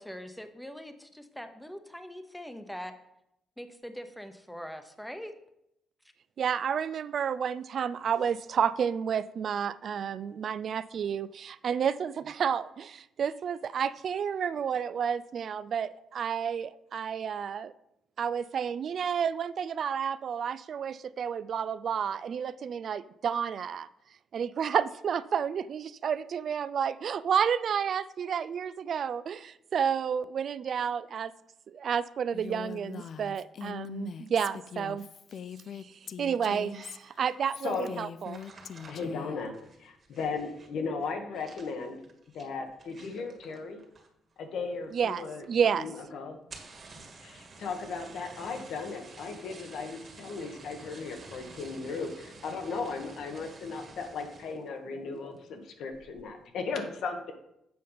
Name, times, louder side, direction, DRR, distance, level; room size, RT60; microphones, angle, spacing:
voice 1, 0.0-2.9 3.6-5.3, equal, 5° left, 8 dB, 0.9 m, -42 dB
voice 2, 6.4-17.7 18.2-23.9 24.3-31.3 31.7-35.1 35.8-38.4 44.9-45.9, right 7 dB, 55° right, 16 dB, 0.3 m, -31 dB
Female speech woman speaking, 32.3-39.4, left 8 dB, 55° left, 0.4 m, -42 dB
sound 1, 38.2-44.3 44.6-45.1 45.4-45.5 45.8-45.9 46.3-54.7 55.1-55.5 55.9-56.3, right 3 dB, 40° right, 1.7 m, -51 dB
voice 3, 38.9-39.5 39.8-42.0 42.3-43.8 44.4-45.4 45.8-46.4 47.2-57.3, left 4 dB, 75° left, 5 dB, 1.3 m, -36 dB
7.7 x 5.1 x 5.6 m, 0.81 s
cardioid pair, 90°, 0 cm